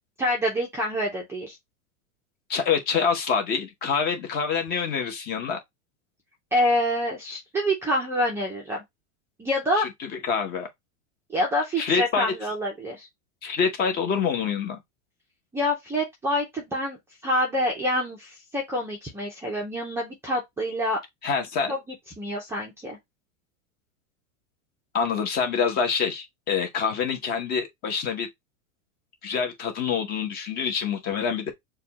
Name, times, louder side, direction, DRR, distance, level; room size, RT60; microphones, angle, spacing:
voice 1, 0.2-1.6 6.5-8.8 9.4-9.9 11.3-13.1 15.5-17.0 17.2-21.0 21.7-21.8 22.2-23.0, equal, 5° right, 0.6 m, -26 dB
voice 2, 2.5-5.6 9.7-10.7 11.8-12.3 13.4-14.8 21.2-21.7 24.9-28.3 29.2-31.5, left 6 dB, 25° left, 0.9 m, -26 dB
6.6 x 2.4 x 2.8 m
supercardioid pair, 165°, 38 cm